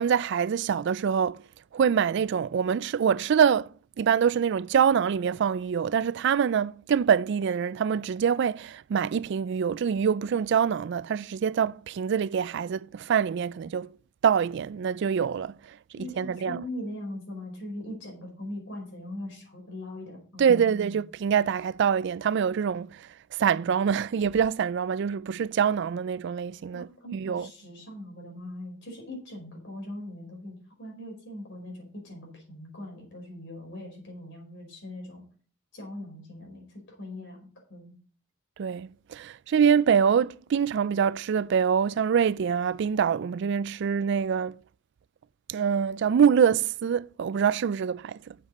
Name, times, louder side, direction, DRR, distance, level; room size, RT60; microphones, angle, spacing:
voice 1, 0.0-1.4 1.7-3.7 4.0-13.9 14.2-15.5 15.9-16.6 20.4-23.1 23.4-27.5 38.6-44.6 45.5-48.3, right 7 dB, 60° right, 0.3 m, -25 dB
voice 2, 16.0-20.9 26.7-35.2 35.7-37.9, left 1 dB, 60° left, 5.0 m, -41 dB
8.0 x 7.5 x 5.3 m
head